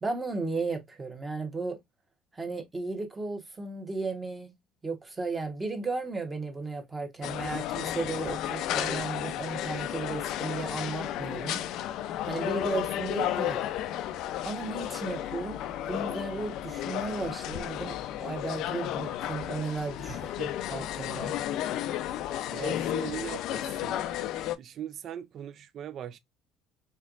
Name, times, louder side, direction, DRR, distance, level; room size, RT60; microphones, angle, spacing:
voice 1, 0.0-1.8 2.3-4.5 4.8-11.6 12.2-13.6 14.4-20.2 20.7-21.3, right 3 dB, 15° right, 1.0 m, -35 dB
sound 1, 7.2-24.6, left 12 dB, 60° left, 0.4 m, -33 dB
voice 2, 20.1-20.5 22.5-24.0 24.6-26.2, right 10 dB, 45° right, 0.3 m, -40 dB
4.4 x 3.4 x 2.4 m
cardioid pair, 150°, 0 cm